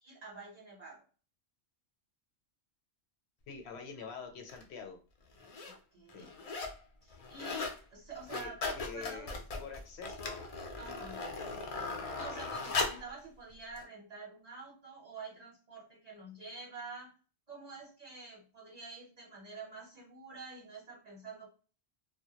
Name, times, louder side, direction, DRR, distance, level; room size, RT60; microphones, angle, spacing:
voice 1, 0.0-1.0 5.6-6.3 7.0-9.4 10.8-11.2 12.0-17.1 17.5-21.5, right 4 dB, 40° right, -3 dB, 0.9 m, -48 dB
voice 2, 3.5-5.0 6.1-6.3 8.3-10.4 11.1-11.6, left 6 dB, 75° left, 5 dB, 0.8 m, -46 dB
sound 1, 4.5-4.6 5.3-5.8 6.1-6.8 7.1-7.8 8.1-13.1 13.8-13.9, left 3 dB, 60° left, 0.4 m, -38 dB
2.2 x 2.1 x 2.8 m, 0.37 s
omnidirectional pair, 1.1 m